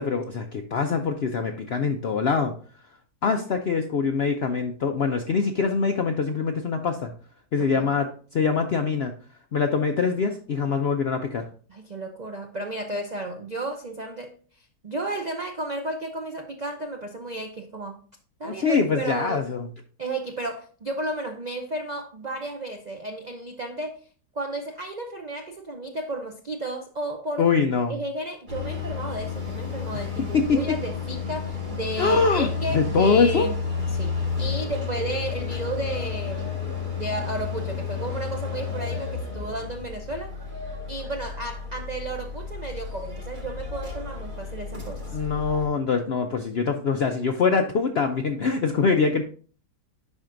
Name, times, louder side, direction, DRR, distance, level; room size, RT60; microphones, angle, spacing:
voice 1, 0.0-2.5 3.2-7.1 7.5-9.1 9.5-11.5 18.4-19.7 27.4-27.9 30.3-30.6 32.0-33.5 45.1-49.2, left 5 dB, 70° left, 5 dB, 0.6 m, -24 dB
voice 2, 7.6-7.9 11.7-14.4 14.8-18.0 18.4-19.5 20.0-24.0 24.3-27.5 27.9-33.6 33.9-36.6 37.0-40.3 40.9-45.1, right 2 dB, 75° right, 4 dB, 0.4 m, -33 dB
sound 1, 28.5-45.7, left 6 dB, 30° right, 2.4 m, -32 dB
10.5 x 4.4 x 2.5 m, 0.42 s
omnidirectional pair, 1.8 m